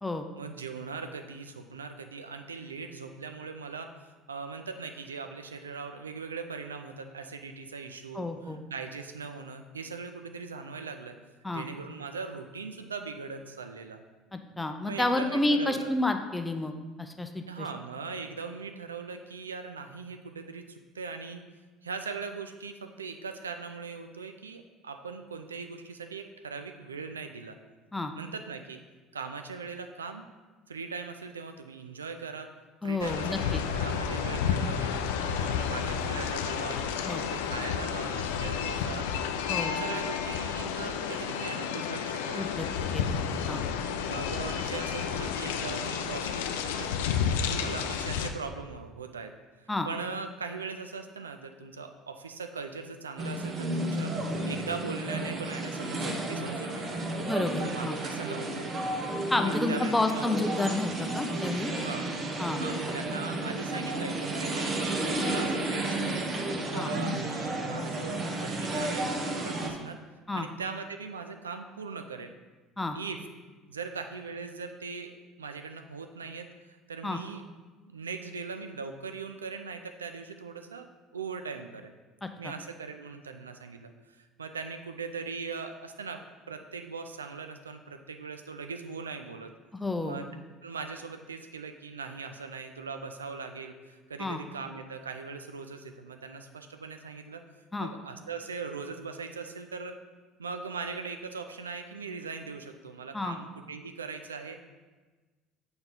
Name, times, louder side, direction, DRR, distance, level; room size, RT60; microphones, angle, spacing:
voice 1, 0.4-11.2 11.5-14.0 14.9-15.9 17.5-21.4 21.8-27.6 28.2-28.8 29.1-30.3 30.7-32.5 32.8-39.1 39.7-42.8 44.1-46.9 47.2-54.1 54.5-57.0 57.6-58.7 59.4-60.3 61.7-62.1 62.6-70.0 70.3-72.3 72.9-73.2 73.7-77.4 77.9-81.9 82.4-89.5 90.0-90.3 90.6-97.4 97.8-100.0 100.4-104.6, right 5 dB, 85° right, 7 dB, 0.3 m, -40 dB
voice 2, 8.1-8.6 11.4-11.6 14.3-17.7 27.9-28.1 32.8-33.6 37.0-37.2 39.5-39.7 42.3-42.7 42.9-43.6 49.7-49.9 57.2-58.0 59.3-61.7 62.4-62.6 66.7-66.9 70.3-70.5 72.8-73.0 77.0-77.2 82.2-82.5 89.7-90.2 94.2-94.4 97.7-97.9 103.1-103.4, left 2 dB, 10° left, 6 dB, 0.6 m, -30 dB
sound 1, 33.0-48.3, left 7 dB, 70° left, 0.4 m, -31 dB
sound 2, 53.2-69.7, right 1 dB, 40° right, 0.8 m, -32 dB
7.0 x 3.9 x 3.7 m, 1.3 s
figure-of-eight pair, 60°, 0 cm